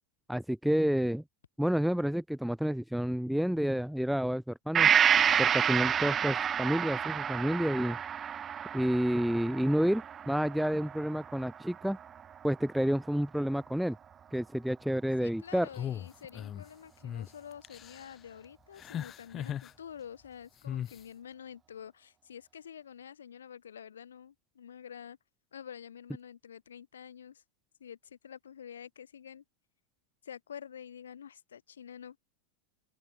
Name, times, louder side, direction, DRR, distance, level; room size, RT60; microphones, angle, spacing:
voice 1, 0.3-1.2 1.6-4.9 5.4-8.0 8.7-12.0 12.4-14.0 14.3-15.7, equal, ahead, 1.5 m, -29 dB
Gong, 4.7-12.4 12.8-12.9, right 8 dB, 25° right, 1.1 m, -29 dB
voice 2, 15.2-25.2 25.5-27.4 27.8-29.4 30.2-32.2, left 8 dB, 65° left, 6.3 m, -48 dB
sound 1, 15.7-16.6 17.0-17.3 17.6-18.1 18.8-19.7 20.6-21.0, left 10 dB, 25° left, 2.1 m, -38 dB
open air
figure-of-eight pair, 90°, 0 cm